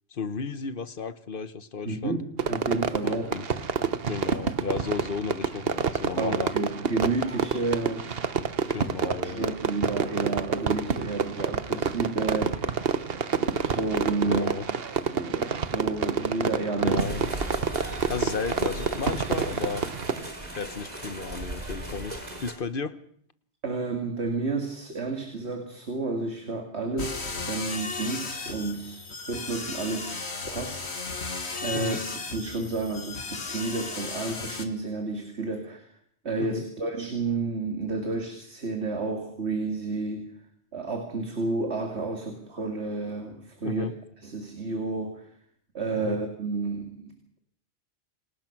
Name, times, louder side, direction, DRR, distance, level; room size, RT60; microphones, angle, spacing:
voice 1, 0.1-2.2 3.0-3.5 4.0-6.5 8.7-9.6 14.2-14.7 16.8-17.3 18.1-19.8 20.6-23.0 31.7-32.0 36.4-36.6 43.6-43.9 46.0-46.2, left 5 dB, 55° left, 13 dB, 1.3 m, -33 dB
voice 2, 1.8-3.2 6.2-8.1 9.0-12.8 13.1-14.4 15.1-17.0 23.6-32.0 32.3-36.0 36.2-40.3 40.7-43.9 44.2-45.4 45.7-47.4, right 3 dB, 80° right, 4 dB, 2.8 m, -31 dB
Fireworks, 2.4-20.3, right 6 dB, 65° right, 1.3 m, -28 dB
sound 1, 17.0-22.5, right 1 dB, 40° right, 4.2 m, -37 dB
sound 2, 27.0-34.6, left 4 dB, 80° left, 2.2 m, -35 dB
28.0 x 19.0 x 6.0 m, 0.64 s
omnidirectional pair, 1.1 m